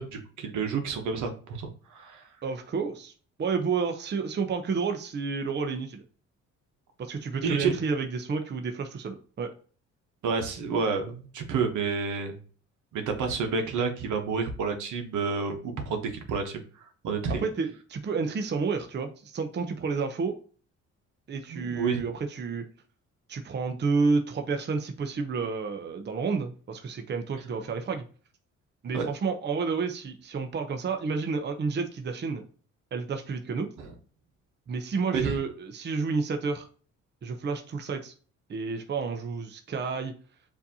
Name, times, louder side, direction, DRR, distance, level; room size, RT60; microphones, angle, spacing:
voice 1, 0.0-2.2 7.4-7.8 10.2-12.4 12.9-16.6 17.0-17.4 21.5-22.0 28.9-29.1 35.1-35.4, right 5 dB, 75° right, 5 dB, 1.0 m, -29 dB
voice 2, 2.4-3.1 3.4-6.0 7.0-9.5 17.3-20.3 21.3-22.6 23.3-28.0 28.8-32.4 32.9-33.7 34.7-36.7 37.2-38.1 38.5-40.1, right 4 dB, 35° right, 5 dB, 0.7 m, -30 dB
6.9 x 2.7 x 2.8 m, 0.40 s
cardioid pair, 90°, 30 cm